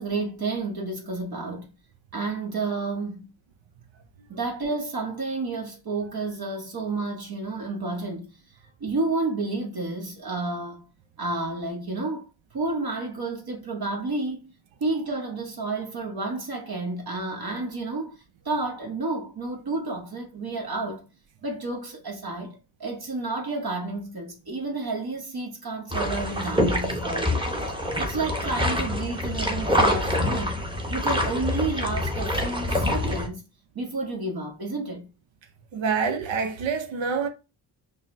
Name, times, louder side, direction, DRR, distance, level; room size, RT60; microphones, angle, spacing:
voice 1, 0.0-1.7 2.1-3.3 4.3-8.3 8.8-10.8 11.2-12.2 12.5-14.4 14.8-21.0 21.4-27.4 28.0-30.6 30.9-33.4 33.7-35.1, right 3 dB, 50° right, 1.2 m, -30 dB
sound 1, 25.9-33.3, left 1 dB, 10° right, 1.0 m, -26 dB
voice 2, 35.7-37.3, right 5 dB, 70° right, 0.7 m, -26 dB
5.3 x 2.1 x 2.6 m
cardioid pair, 55°, 48 cm